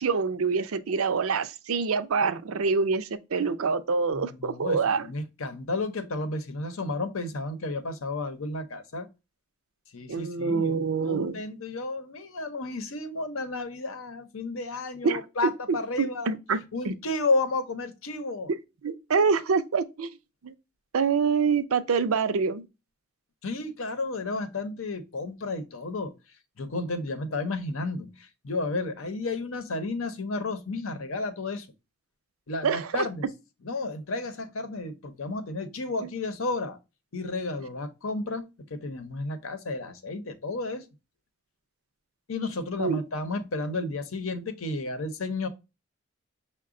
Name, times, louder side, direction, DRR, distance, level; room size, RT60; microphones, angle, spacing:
voice 1, 0.0-5.1 10.1-11.4 15.0-16.6 16.8-16.9 18.8-20.1 20.4-20.5 20.9-22.6 32.6-33.0 42.8-43.0, right 5 dB, 85° right, 0.5 m, -26 dB
voice 2, 4.1-9.1 9.9-16.3 16.7-18.5 23.4-26.1 26.6-31.7 32.5-33.3 33.6-36.8 37.1-38.4 38.7-40.9 42.3-45.5, left 2 dB, 80° left, 0.8 m, -32 dB
5.9 x 2.2 x 3.7 m
head